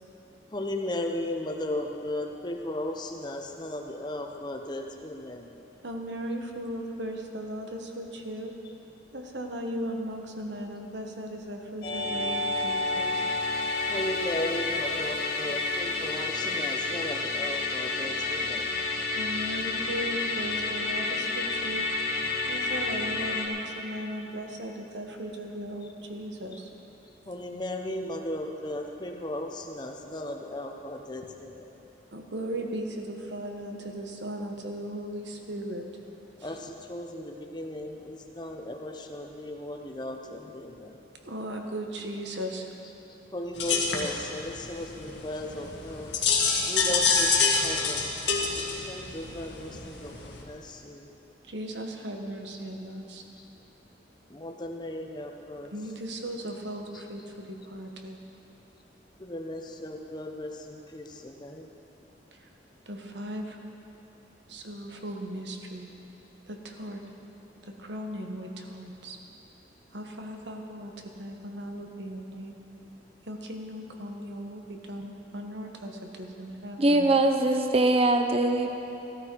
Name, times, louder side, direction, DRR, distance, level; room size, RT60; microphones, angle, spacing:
voice 1, 0.5-5.5 13.9-18.7 27.3-31.7 36.4-41.0 43.3-46.1 46.7-48.1 48.5-51.1 53.4-53.5 54.3-55.7 56.9-57.0 59.2-61.7, left 1 dB, 25° left, 3 dB, 0.9 m, -36 dB
voice 2, 5.8-8.5 9.1-13.2 19.1-21.9 22.5-26.7 32.1-35.9 36.4-36.6 41.2-42.7 51.4-53.2 55.7-58.2 62.3-62.5 62.9-63.6 64.5-65.9 66.5-67.0 67.6-69.2 69.9-70.9 71.2-72.5 73.2-77.1, equal, 75° right, 3 dB, 1.3 m, -37 dB
Musical instrument, 11.8-23.5, left 3 dB, 55° left, 1.6 m, -30 dB
sound 1, 43.6-50.4, left 5 dB, 70° left, 1.7 m, -27 dB
voice 3, 76.8-78.7, right 2 dB, 30° right, 6 dB, 0.7 m, -22 dB
14.5 x 13.5 x 4.7 m, 3.0 s
head